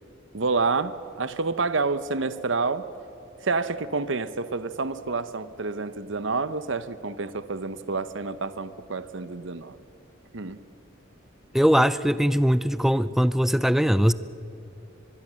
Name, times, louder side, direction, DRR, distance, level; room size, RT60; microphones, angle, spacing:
voice 1, 0.3-2.9 3.4-9.8 10.3-10.6, right 4 dB, 65° right, 13 dB, 0.8 m, -28 dB
voice 2, 11.5-14.1, equal, ahead, 15 dB, 0.5 m, -21 dB
24.5 x 21.5 x 7.5 m, 2.7 s
head